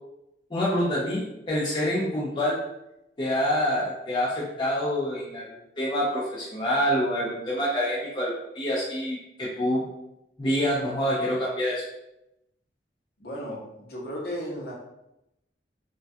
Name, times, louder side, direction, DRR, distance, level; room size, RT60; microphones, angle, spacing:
voice 1, 0.5-2.6 3.2-5.5 5.8-9.8 10.4-11.8, equal, 25° left, -6 dB, 0.4 m, -26 dB
voice 2, 13.2-14.7, equal, 60° left, -3 dB, 0.7 m, -35 dB
2.2 x 2.2 x 2.6 m, 0.87 s
head